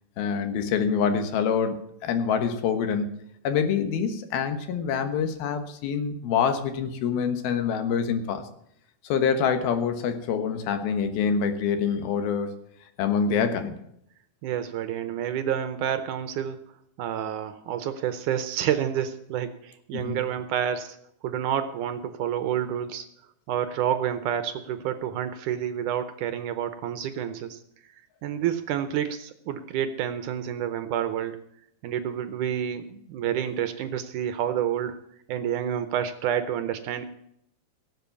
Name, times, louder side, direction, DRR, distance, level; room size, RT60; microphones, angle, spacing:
voice 1, 0.2-3.2 3.4-8.4 9.0-12.5 13.0-13.8 19.9-20.2, left 6 dB, 85° left, 9 dB, 3.2 m, -26 dB
voice 2, 14.4-16.6 17.0-21.0 21.2-23.1 23.5-27.6 28.2-31.4 31.8-35.0 35.3-37.0, right 9 dB, 70° right, 10 dB, 2.0 m, -29 dB
17.5 x 7.6 x 7.0 m, 0.73 s
omnidirectional pair, 4.2 m